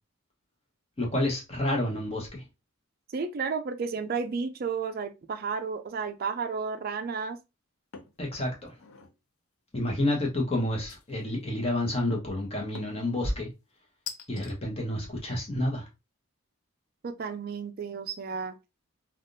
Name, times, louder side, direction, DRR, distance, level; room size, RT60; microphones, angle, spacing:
voice 1, 1.0-2.4 8.2-8.7 9.7-13.5 14.3-15.9, left 1 dB, 30° left, 1.0 m, -29 dB
voice 2, 3.1-7.4 17.0-18.6, right 5 dB, 45° right, 0.3 m, -32 dB
sound 1, 7.9-8.2 8.7-9.2 10.9-11.4 12.7-13.1 14.1-14.5, left 7 dB, 85° left, 0.5 m, -43 dB
3.5 x 2.4 x 2.5 m
head